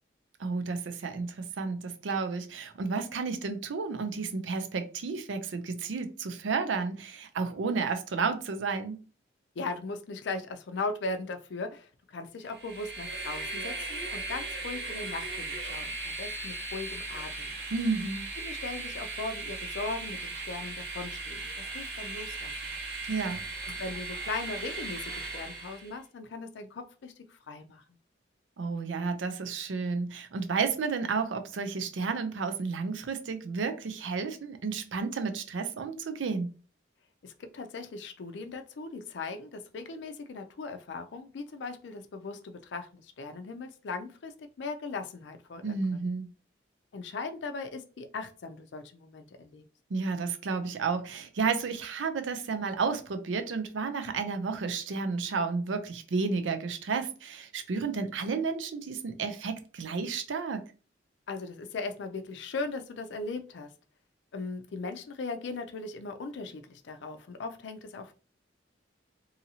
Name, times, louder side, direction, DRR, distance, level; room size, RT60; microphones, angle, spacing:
voice 1, 0.4-9.0 17.7-18.3 23.1-23.4 28.6-36.5 45.6-46.3 49.9-60.6, right 4 dB, 90° right, 0.5 m, -32 dB
voice 2, 9.6-17.6 18.4-22.7 23.6-27.8 37.2-45.8 46.9-49.6 61.3-63.7 64.3-68.1, left 3 dB, 70° left, 0.4 m, -38 dB
Train, 12.5-25.9, right 3 dB, 60° right, 0.8 m, -37 dB
2.7 x 2.7 x 2.7 m
head